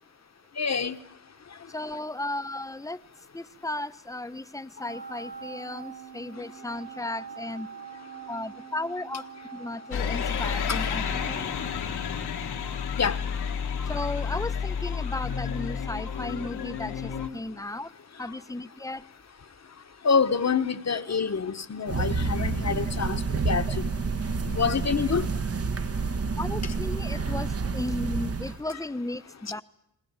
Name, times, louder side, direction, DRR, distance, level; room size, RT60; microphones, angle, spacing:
voice 1, 0.6-0.9 10.7-10.8 13.0-13.2 20.0-23.2 23.4-23.6 24.5-25.2, left 5 dB, 40° left, 1.3 m, -26 dB
voice 2, 1.7-3.0 3.3-7.7 8.3-9.2 9.5-11.5 13.9-17.9 18.2-19.0 23.7-23.8 26.4-29.6, left 2 dB, 10° left, 0.8 m, -35 dB
Wind instrument woodwind instrument, 4.8-12.5, right 7 dB, 85° right, 2.8 m, -44 dB
sound 1, 9.9-17.3, left 7 dB, 80° left, 1.8 m, -30 dB
sound 2, 21.9-28.6, right 4 dB, 40° right, 1.0 m, -29 dB
20.5 x 19.0 x 8.9 m
supercardioid pair, 50°, 39 cm